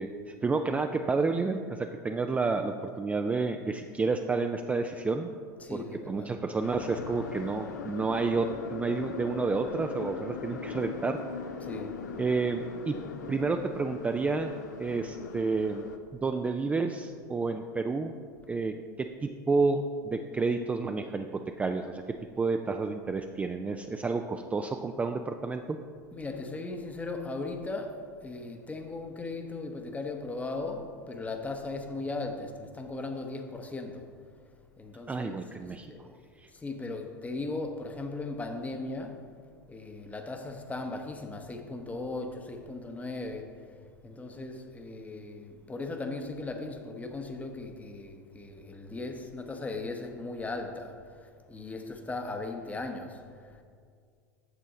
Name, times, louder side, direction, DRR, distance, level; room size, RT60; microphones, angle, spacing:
voice 1, 0.0-5.3 5.7-11.2 12.2-13.0 13.3-14.5 14.8-15.8 16.1-18.2 18.5-22.0 22.4-25.8 35.1-35.9 36.4-36.5, right 4 dB, 15° right, 0.3 m, -30 dB
voice 2, 5.6-6.4 11.6-12.2 26.1-34.3 34.8-43.7 44.0-53.6, left 3 dB, 15° left, 0.8 m, -38 dB
sound 1, 6.6-16.0, left 5 dB, 80° left, 0.6 m, -40 dB
8.3 x 6.8 x 3.7 m
hypercardioid pair, 85°, 10 cm